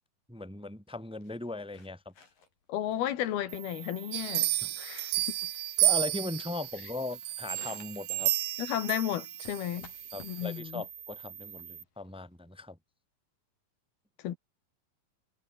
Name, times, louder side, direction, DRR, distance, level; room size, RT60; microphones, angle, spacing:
voice 1, 0.3-2.1 4.6-4.7 5.8-8.3 10.1-12.8, left 2 dB, 5° right, 0.9 m, -38 dB
sound 1, 0.9-12.5, left 5 dB, 65° left, 6.8 m, -58 dB
voice 2, 2.7-4.5 4.8-5.4 8.6-9.9 10.2-10.8 14.2-14.4, left 11 dB, 85° left, 3.7 m, -33 dB
sound 2, 3.5-11.8, right 9 dB, 50° right, 2.9 m, -47 dB
sound 3, 4.1-6.7 7.2-9.6 10.1-10.2, right 17 dB, 90° right, 2.9 m, -30 dB
omnidirectional pair, 4.3 m